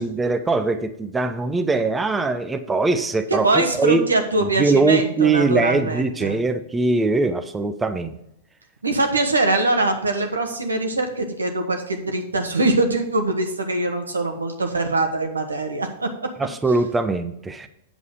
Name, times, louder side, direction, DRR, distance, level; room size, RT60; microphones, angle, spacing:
voice 1, 0.0-4.0 4.4-8.1 16.4-17.7, right 3 dB, 10° right, 8 dB, 0.7 m, -21 dB
voice 2, 3.3-6.4 8.8-16.1, right 2 dB, 85° right, 4 dB, 1.6 m, -22 dB
8.3 x 7.1 x 4.8 m, 0.79 s
figure-of-eight pair, 105°, 0 cm